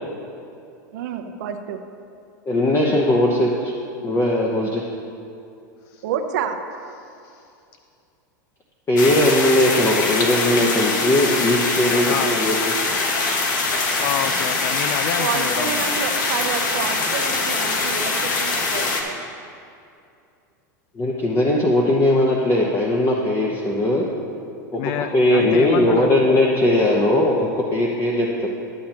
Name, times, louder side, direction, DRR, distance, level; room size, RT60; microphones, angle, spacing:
voice 1, 0.9-1.8 6.0-6.6 15.2-19.2, right 8 dB, 70° right, 6 dB, 0.7 m, -29 dB
voice 2, 2.5-3.7 4.0-4.8 8.9-12.6 21.0-24.1 24.7-24.8 25.1-28.5, left 1 dB, 25° left, -2 dB, 0.9 m, -19 dB
sound 1, 9.0-19.0, left 3 dB, 75° left, 1.1 m, -23 dB
voice 3, 14.0-15.9 24.7-26.1, left 10 dB, 55° left, 9 dB, 0.4 m, -28 dB
12.5 x 7.5 x 2.9 m, 2.5 s
hypercardioid pair, 105°, 10 cm